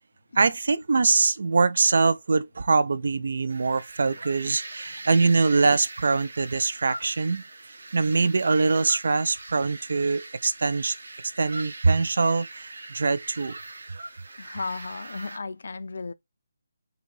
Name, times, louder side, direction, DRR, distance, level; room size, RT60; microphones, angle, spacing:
voice 1, 0.4-7.4 7.9-11.0 11.4-13.6, right 4 dB, 60° right, 0.4 m, -23 dB
sound 1, 3.5-15.4, right 2 dB, 80° right, 0.9 m, -42 dB
voice 2, 14.4-16.1, left 4 dB, 65° left, 0.4 m, -34 dB
3.8 x 2.7 x 4.7 m
hypercardioid pair, 175°, 0 cm